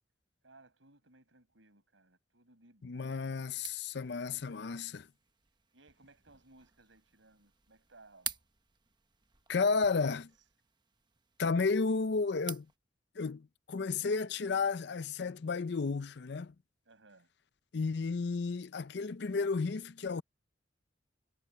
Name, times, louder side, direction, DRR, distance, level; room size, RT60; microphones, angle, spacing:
voice 1, 0.4-3.4 4.2-5.0 5.7-8.4 16.9-17.3, right 2 dB, 80° right, 5.4 m, -62 dB
voice 2, 2.8-5.0 9.5-10.3 11.4-12.7 13.2-16.5 17.7-20.2, left 4 dB, 60° left, 0.5 m, -32 dB
sound 1, 3.5-12.8, right 7 dB, 25° right, 1.1 m, -50 dB
head